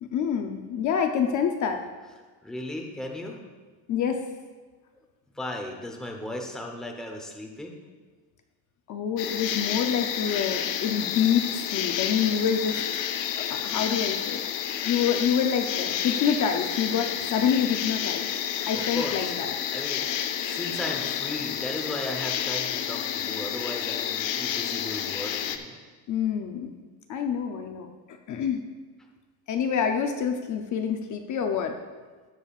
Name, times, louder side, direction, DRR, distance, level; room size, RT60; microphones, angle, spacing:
voice 1, 0.0-1.8 3.9-4.3 8.9-12.8 13.4-14.4 14.8-18.3 18.7-19.5 26.1-26.7 27.1-28.7 29.5-31.8, left 7 dB, 45° left, 5 dB, 0.6 m, -27 dB
voice 2, 2.4-3.4 5.3-7.7 18.7-19.3 19.7-20.1 20.4-25.7, left 1 dB, ahead, 1 dB, 0.8 m, -36 dB
sound 1, 9.2-25.6, left 9 dB, 85° left, 0.9 m, -30 dB
18.0 x 7.3 x 2.4 m, 1.4 s
cardioid pair, 170°, 43 cm